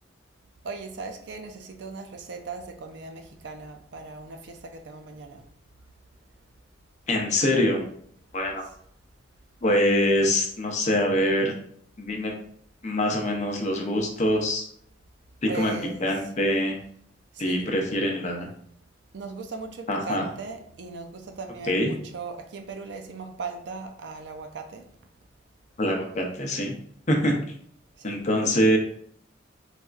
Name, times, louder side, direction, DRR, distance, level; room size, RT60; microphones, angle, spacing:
voice 1, 0.6-5.5 15.5-16.1 17.3-17.7 19.1-24.9 28.0-28.2, right 4 dB, 65° right, 5 dB, 0.4 m, -38 dB
voice 2, 7.1-7.8 8.3-8.6 9.6-11.5 12.0-12.3 12.8-14.6 15.4-15.8 16.0-16.8 17.4-18.5 19.9-20.3 21.6-21.9 25.8-26.7 27.1-27.4 28.0-28.8, left 1 dB, 40° left, 1 dB, 0.5 m, -24 dB
4.1 x 2.3 x 2.4 m, 0.63 s
head